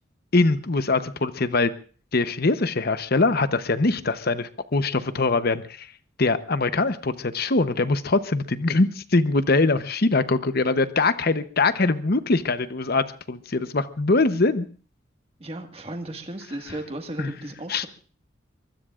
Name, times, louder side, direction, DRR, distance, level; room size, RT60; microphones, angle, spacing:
voice 1, 0.3-1.7 2.1-5.9 6.2-14.7 17.2-17.3 17.7-17.9, left 3 dB, 50° left, 11 dB, 0.9 m, -22 dB
voice 2, 15.4-17.9, right 1 dB, 30° right, 4 dB, 1.7 m, -35 dB
23.5 x 23.5 x 2.5 m, 0.40 s
head